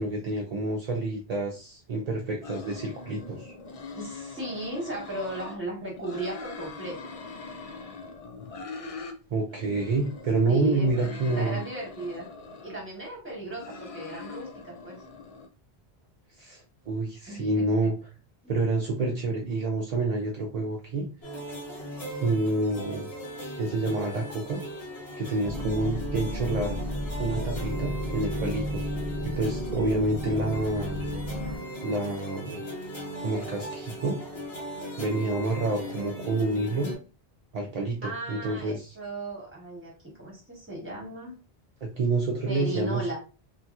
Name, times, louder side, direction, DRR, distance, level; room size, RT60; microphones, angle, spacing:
voice 1, 0.0-3.5 9.3-11.6 16.4-17.9 18.5-21.1 22.2-23.1 23.6-24.6 25.2-26.8 27.2-28.8 29.2-31.0 31.8-32.6 33.2-34.2 35.0-36.9 37.5-38.9 41.8-43.2, right 2 dB, 55° right, 0 dB, 0.5 m, -28 dB
sound 1, 2.4-5.6 5.9-9.2 9.5-12.8 13.3-15.5, left 4 dB, 50° left, 0.4 m, -42 dB
voice 2, 4.0-7.1 10.5-12.3 12.6-15.0 17.3-17.9 18.4-18.5 38.0-41.3 42.5-43.2, right 2 dB, 10° right, -3 dB, 1.2 m, -36 dB
sound 2, 21.2-37.0, equal, 70° left, 1.6 m, -38 dB
sound 3, 25.4-31.6, equal, 25° left, 1.0 m, -33 dB
2.8 x 2.8 x 2.3 m, 0.34 s
omnidirectional pair, 1.1 m